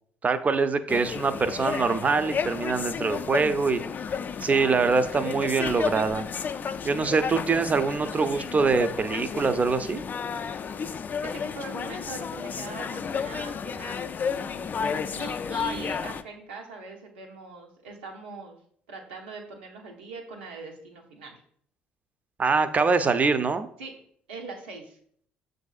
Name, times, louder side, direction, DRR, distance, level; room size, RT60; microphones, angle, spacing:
voice 1, 0.2-3.8 4.4-6.2 6.8-10.0 22.4-23.7, right 4 dB, 30° right, 11 dB, 0.5 m, -24 dB
sound 1, 0.9-16.2, left 6 dB, 35° left, 0.3 m, -32 dB
voice 2, 11.2-18.6 18.9-21.4 23.8-24.0 24.3-25.0, right 3 dB, 85° right, 0 dB, 0.9 m, -41 dB
7.2 x 2.6 x 2.4 m, 0.63 s
hypercardioid pair, 55°, 5 cm